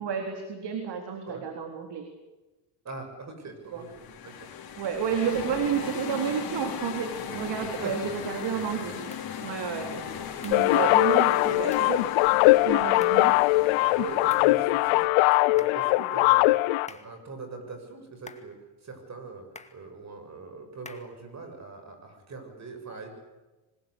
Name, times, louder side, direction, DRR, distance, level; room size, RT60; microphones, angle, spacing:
voice 1, 0.0-2.1 3.7-3.8 4.8-9.0 9.4-9.9 10.4-12.0 12.7-13.4, right 7 dB, 60° right, 5 dB, 3.8 m, -31 dB
voice 2, 2.8-4.5 7.8-7.9 9.9-10.3 10.5-10.8 11.3-11.6 13.9-15.1 15.5-16.6 16.9-19.4 19.7-23.2, right 3 dB, 35° right, 6 dB, 7.3 m, -41 dB
sound 1, 3.7-15.1, left 8 dB, 50° left, 4.3 m, -38 dB
sound 2, 9.1-9.3 10.4-10.7 11.7-12.0 13.0-13.3 14.3-14.6 15.6-15.9 16.9-17.2 18.3-18.6 19.5-19.8 20.8-21.2, left 3 dB, 15° left, 2.2 m, -47 dB
sound 3, 10.5-16.9, left 21 dB, 80° left, 0.8 m, -21 dB
25.5 x 21.5 x 8.4 m, 1.1 s
supercardioid pair, 90°, 47 cm